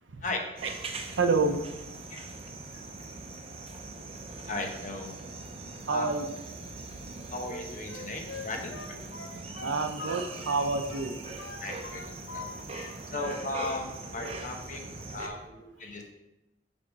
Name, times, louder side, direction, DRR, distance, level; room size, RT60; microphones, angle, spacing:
sound 1, 0.6-15.3, right 3 dB, 35° right, 0.7 m, -41 dB
voice 1, 1.2-1.6 5.9-6.2 9.6-11.1, right 3 dB, 80° right, 7 dB, 0.6 m, -27 dB
voice 2, 4.5-5.2 5.9-6.1 7.3-9.0 11.6-12.0 12.3-12.5 12.7-14.8 15.1-16.1, left 2 dB, 45° left, 2 dB, 1.0 m, -37 dB
Wind instrument woodwind instrument, 7.4-10.6 10.9-12.5 12.7-13.8 14.1-14.4, left 4 dB, 80° left, 0.8 m, -43 dB
6.6 x 3.6 x 5.3 m, 0.94 s
head